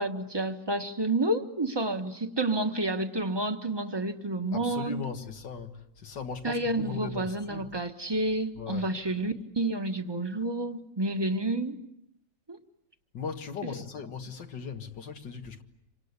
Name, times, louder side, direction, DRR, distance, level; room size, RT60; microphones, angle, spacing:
voice 1, 0.0-5.0 6.4-11.8 12.5-12.6 13.6-13.7, right 2 dB, 15° right, 1.4 m, -30 dB
voice 2, 4.5-7.7 8.6-8.9 13.1-15.6, left 5 dB, 85° left, 2.4 m, -38 dB
27.5 x 25.5 x 8.2 m
omnidirectional pair, 1.9 m